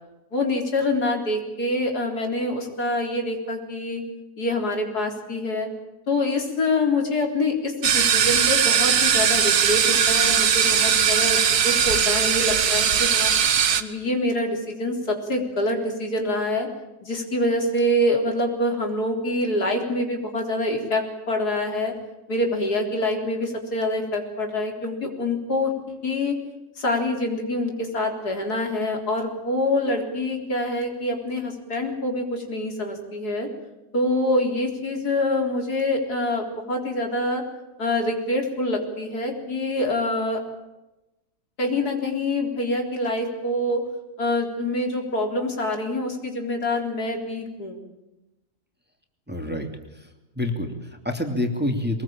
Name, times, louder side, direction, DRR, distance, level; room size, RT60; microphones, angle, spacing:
voice 1, 0.3-4.0 4.4-5.7 6.1-13.3 13.8-16.7 17.0-21.9 22.3-26.4 26.8-33.5 33.9-37.4 37.8-40.4 41.6-43.8 44.2-47.8, left 1 dB, 85° left, 3 dB, 4.4 m, -25 dB
sound 1, 7.8-13.8, right 8 dB, 75° right, 1.8 m, -20 dB
voice 2, 49.3-50.1 50.3-52.0, left 1 dB, 5° right, 4 dB, 2.7 m, -28 dB
23.5 x 20.0 x 8.8 m, 0.99 s
omnidirectional pair, 1.6 m